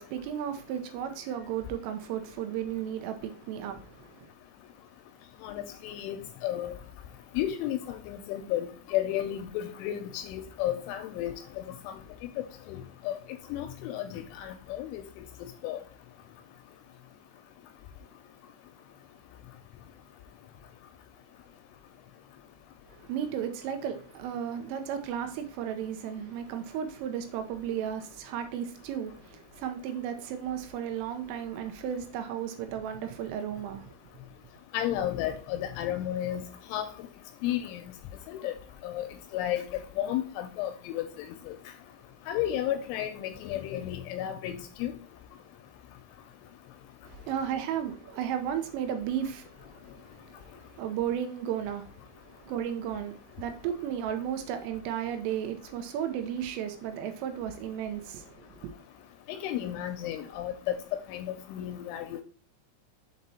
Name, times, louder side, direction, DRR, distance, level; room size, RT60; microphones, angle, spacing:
voice 1, 0.0-4.1 23.1-33.9 47.0-49.8 50.2-50.3 50.7-51.9 52.4-58.7, right 9 dB, 85° right, 3.4 m, -34 dB
voice 2, 5.4-6.2 6.4-6.7 7.4-11.6 12.7-13.2 13.5-15.0 15.6-15.8 34.7-36.4 36.7-36.9 37.4-37.8 38.3-38.5 38.8-39.1 39.3-39.6 40.0-41.0 42.3-44.9 59.3-62.2, left 12 dB, 85° left, 2.9 m, -32 dB
7.4 x 4.2 x 4.2 m
omnidirectional pair, 5.9 m